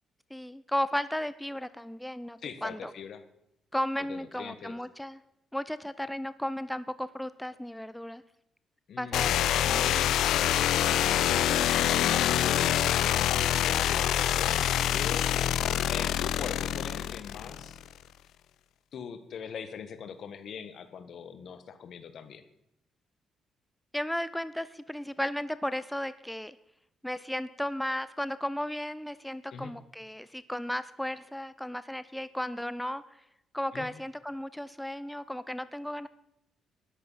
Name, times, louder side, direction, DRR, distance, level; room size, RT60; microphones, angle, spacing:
voice 1, 0.3-2.9 3.7-5.2 5.5-8.2 9.0-10.0 23.9-26.6 27.0-33.0 33.5-36.1, left 1 dB, 5° left, 14 dB, 0.5 m, -34 dB
voice 2, 2.4-3.2 4.0-4.8 8.9-9.4 12.0-13.3 13.5-14.6 14.9-15.3 15.9-17.8 18.9-22.4 29.5-29.7 33.7-33.9, left 7 dB, 60° left, 11 dB, 1.4 m, -42 dB
sound 1, 9.1-17.9, left 11 dB, 80° left, 0.5 m, -26 dB
13.0 x 11.0 x 5.6 m, 0.80 s
cardioid pair, 90°, 0 cm